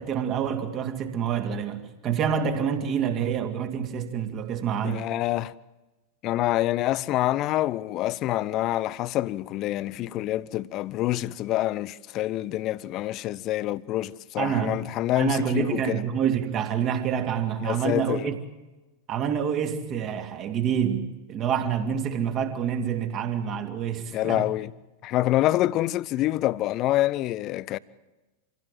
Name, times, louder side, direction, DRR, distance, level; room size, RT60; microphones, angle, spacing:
voice 1, 0.0-5.1 14.4-14.9 15.1-18.4 19.1-24.5, right 8 dB, 35° right, 2.7 m, -27 dB
voice 2, 4.8-5.5 6.2-16.0 17.6-18.3 24.1-24.7 25.0-27.8, left 15 dB, 35° left, 0.7 m, -26 dB
26.5 x 17.0 x 7.5 m
figure-of-eight pair, 90°, 0 cm